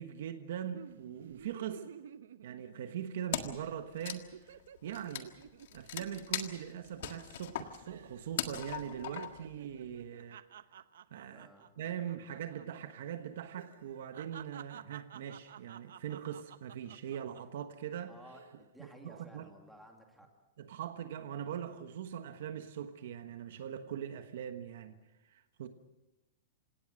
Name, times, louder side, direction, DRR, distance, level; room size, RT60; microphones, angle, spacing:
voice 1, 0.0-1.9 2.4-5.3 5.7-10.4 11.1-11.5 11.8-18.1 18.8-19.5 20.6-25.0 25.2-25.7, right 9 dB, 55° right, 8 dB, 1.3 m, -41 dB
sound 1, 0.7-3.3 3.6-3.8 4.1-7.5 7.9-8.3 8.6-12.7 12.9-13.1 13.6-17.6 18.1-18.6, right 9 dB, 75° right, 0.9 m, -52 dB
Wood, 3.3-3.7 3.9-9.5, left 11 dB, 55° left, 1.6 m, -40 dB
voice 2, 11.3-11.7 18.1-20.3, equal, ahead, 1 dB, 2.3 m, -55 dB
28.0 x 17.5 x 6.4 m, 0.99 s
supercardioid pair, 180°, 0 cm